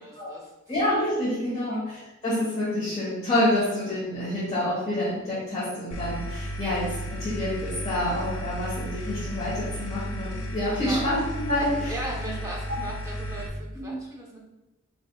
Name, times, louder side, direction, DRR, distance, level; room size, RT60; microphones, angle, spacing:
voice 1, 0.0-0.5 1.5-1.8 10.7-11.0 11.6-14.4, right 1 dB, 15° right, -3 dB, 0.7 m, -37 dB
voice 2, 0.7-11.9 13.7-14.0, left 1 dB, 30° left, -10 dB, 1.2 m, -28 dB
sound 1, 5.9-13.5, equal, 85° left, 0.8 m, -34 dB
4.9 x 3.4 x 2.3 m, 1.0 s
head